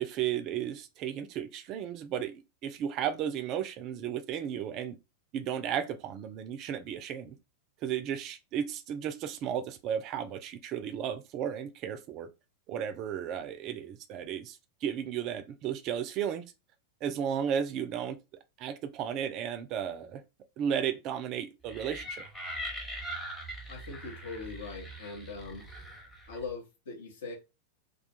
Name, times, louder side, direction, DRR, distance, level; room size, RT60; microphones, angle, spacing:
voice 1, 0.0-5.0 5.3-7.3 7.8-12.3 12.7-16.4 17.0-18.2 18.6-20.2 20.6-22.2, right 9 dB, 40° right, 0.3 m, -34 dB
sound 1, 21.7-26.5, equal, 10° left, 0.8 m, -41 dB
voice 2, 23.7-25.7 26.3-27.3, left 4 dB, 60° left, 0.8 m, -41 dB
2.3 x 2.3 x 2.7 m
figure-of-eight pair, 90°, 0 cm